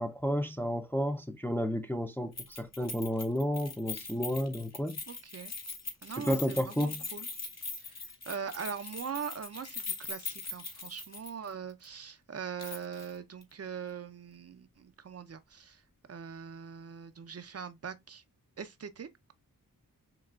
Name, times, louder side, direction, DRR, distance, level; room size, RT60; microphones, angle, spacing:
voice 1, 0.0-5.0 6.2-7.0, equal, 5° left, 0.4 m, -32 dB
Keys jangling, 2.4-11.5 11.8-11.9 12.6-13.1 13.4-13.5, left 4 dB, 50° left, 1.0 m, -41 dB
voice 2, 5.1-5.6 6.0-7.3 7.8-15.8 16.1-18.2 18.6-19.3, right 7 dB, 45° right, 0.5 m, -42 dB
5.8 x 2.3 x 2.3 m
cardioid pair, 50°, 35 cm